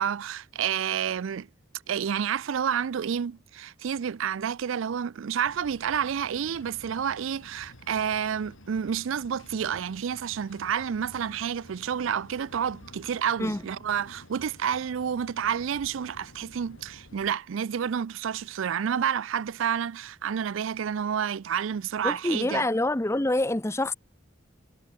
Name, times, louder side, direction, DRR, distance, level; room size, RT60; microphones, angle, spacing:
voice 1, 0.0-1.5 1.9-22.7, right 8 dB, 80° right, 0.4 m, -29 dB
sound 1, 5.4-17.3, left 1 dB, 85° left, 4.7 m, -51 dB
voice 2, 22.0-23.9, left 1 dB, 15° left, 0.7 m, -26 dB
head